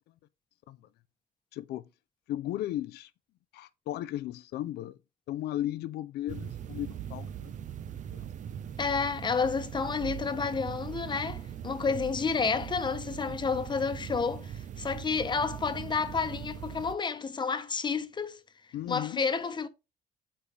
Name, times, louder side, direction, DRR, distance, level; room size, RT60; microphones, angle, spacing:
voice 1, 1.5-1.8 2.3-3.1 3.5-5.0 5.3-7.5 8.1-8.2 18.7-19.2, left 13 dB, 75° left, 0.7 m, -35 dB
sound 1, 6.3-16.9, right 9 dB, 45° right, 0.7 m, -40 dB
voice 2, 8.8-18.4 18.9-19.7, left 5 dB, 25° left, 1.1 m, -30 dB
8.8 x 4.4 x 3.5 m
cardioid pair, 110°, 17 cm